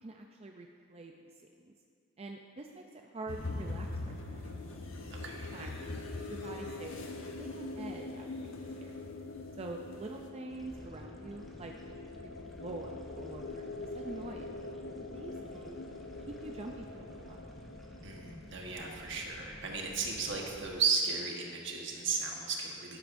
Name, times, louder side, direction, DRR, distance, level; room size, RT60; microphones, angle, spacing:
voice 1, 0.0-1.1 1.6-1.7 2.2-4.5 5.5-5.9 6.3-7.1 7.4-9.0 9.6-11.7 12.4-13.7 13.9-14.6 15.1-15.8 16.4-17.5, right 2 dB, 30° right, 2 dB, 0.5 m, -45 dB
sound 1, 3.3-10.3, left 2 dB, 85° left, 1.0 m, -43 dB
sound 2, 3.9-19.5, left 3 dB, 60° left, 0.4 m, -45 dB
voice 2, 5.1-5.5 18.0-23.0, right 5 dB, 65° right, 0 dB, 1.3 m, -34 dB
sound 3, 10.5-20.7, equal, ahead, 1.0 m, -51 dB
11.5 x 11.0 x 2.6 m, 2.2 s
head